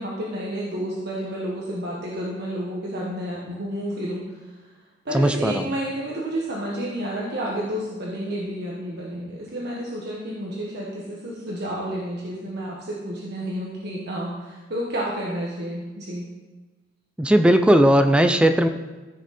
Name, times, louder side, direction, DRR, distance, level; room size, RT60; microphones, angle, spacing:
voice 1, 0.0-4.5 5.0-16.3, equal, 60° right, -4 dB, 1.5 m, -30 dB
voice 2, 5.1-5.7 17.2-18.7, equal, 5° right, 7 dB, 0.4 m, -17 dB
14.5 x 6.3 x 4.3 m, 1.2 s
head